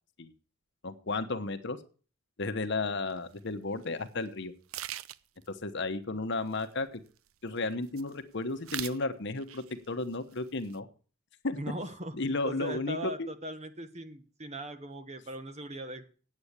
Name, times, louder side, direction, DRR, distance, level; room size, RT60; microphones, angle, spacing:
voice 1, 0.8-1.8 2.4-4.5 5.5-7.0 7.4-10.9 11.4-11.6 12.1-13.3, left 3 dB, 60° left, 9 dB, 1.1 m, -33 dB
sound 1, 3.1-3.2 3.8-4.0 4.3-4.4 4.7-5.5 6.3-7.3 7.6-8.2 8.5-9.0 9.4-9.9 10.1-10.8, right 12 dB, 85° right, 0.5 m, -41 dB
voice 2, 11.6-12.1 12.4-16.1, right 1 dB, 35° right, 9 dB, 1.3 m, -39 dB
8.8 x 8.7 x 8.2 m, 0.40 s
head